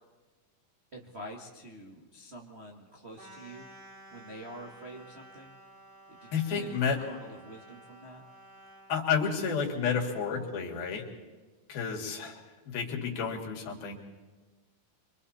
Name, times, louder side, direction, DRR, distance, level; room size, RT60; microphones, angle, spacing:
voice 1, 0.9-3.7 4.1-5.6 6.1-8.2, right 1 dB, 40° right, -1 dB, 0.8 m, -46 dB
sound 1, 3.1-8.9, right 1 dB, 60° right, 8.2 m, -53 dB
voice 2, 6.3-7.0 8.9-11.0 11.7-12.4 12.7-14.0, left 6 dB, 90° left, 1 dB, 4.2 m, -30 dB
26.0 x 24.5 x 4.3 m, 1.3 s
omnidirectional pair, 4.2 m